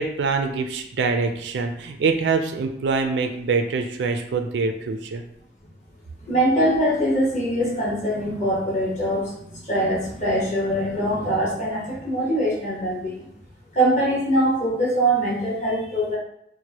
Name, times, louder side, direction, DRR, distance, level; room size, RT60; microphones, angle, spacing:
voice 1, 0.0-5.2, right 4 dB, 70° right, 5 dB, 0.4 m, -24 dB
voice 2, 6.3-13.3 13.7-16.2, right 1 dB, 40° left, -5 dB, 1.0 m, -23 dB
4.5 x 2.1 x 2.9 m, 0.74 s
head